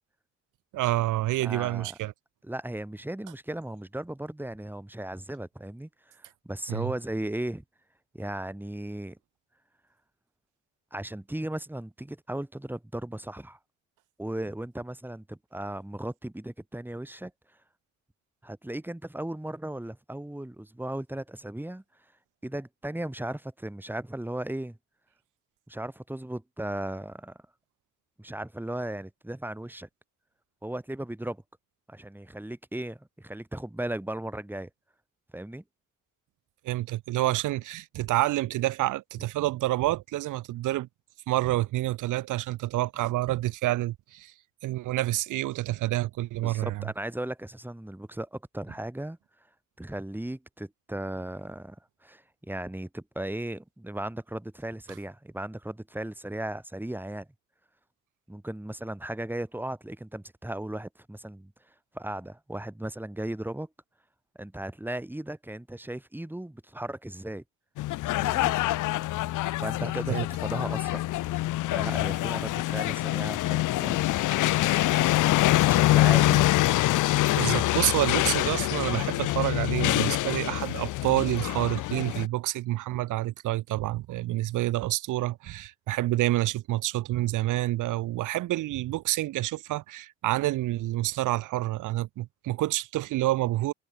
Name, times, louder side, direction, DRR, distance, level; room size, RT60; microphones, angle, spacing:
voice 1, 0.7-2.1 6.7-6.9 36.6-40.9 41.3-44.3 44.6-46.9 70.1-70.2 75.0-75.1 77.4-93.7, right 16 dB, 85° right, 1.1 m, -28 dB
voice 2, 1.4-2.0 2.4-7.6 8.1-9.2 10.9-13.6 14.2-17.3 18.4-21.8 22.4-24.8 25.7-27.4 28.2-29.9 30.6-31.4 31.9-34.7 35.3-35.6 46.4-49.2 49.8-51.8 52.0-57.3 58.3-61.5 61.9-63.7 64.4-67.4 68.1-68.6 69.6-71.1 71.7-74.0 75.7-76.5 82.9-83.0, right 1 dB, 5° right, 5.4 m, -36 dB
sound 1, 67.8-82.3, left 16 dB, 85° left, 1.1 m, -25 dB
cardioid pair, 90°, 30 cm